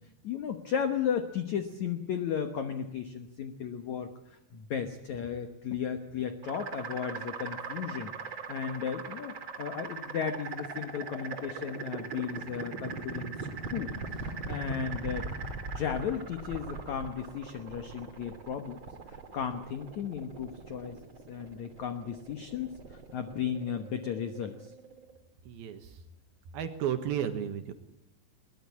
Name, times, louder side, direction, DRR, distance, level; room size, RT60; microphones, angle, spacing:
voice 1, 0.2-8.1 8.5-13.9 14.5-15.3 15.7-18.8 19.1-21.0 21.3-24.7, left 7 dB, 90° left, 8 dB, 1.6 m, -35 dB
sound 1, 6.4-25.2, right 4 dB, 35° right, 2.3 m, -40 dB
voice 2, 25.5-26.0 26.5-27.7, right 9 dB, 65° right, 8 dB, 2.8 m, -33 dB
22.0 x 19.5 x 8.5 m, 0.84 s
omnidirectional pair, 5.3 m